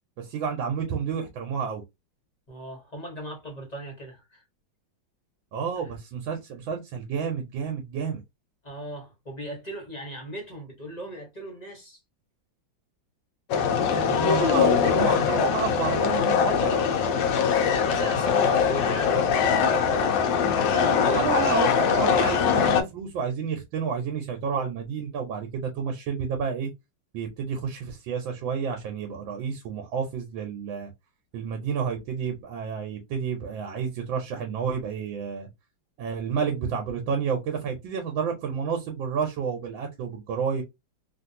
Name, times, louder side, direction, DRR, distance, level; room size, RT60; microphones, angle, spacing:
voice 1, 0.2-1.8 5.5-8.2 13.9-17.2 21.1-26.7 27.1-30.9 31.3-35.5 36.0-40.6, right 6 dB, 85° right, 1.5 m, -30 dB
voice 2, 2.5-4.4 5.8-5.9 8.6-12.0 17.3-21.2, right 1 dB, 25° left, 1.1 m, -38 dB
sound 1, 13.5-22.8, left 6 dB, 75° left, 1.3 m, -22 dB
3.3 x 2.5 x 2.6 m
omnidirectional pair, 2.1 m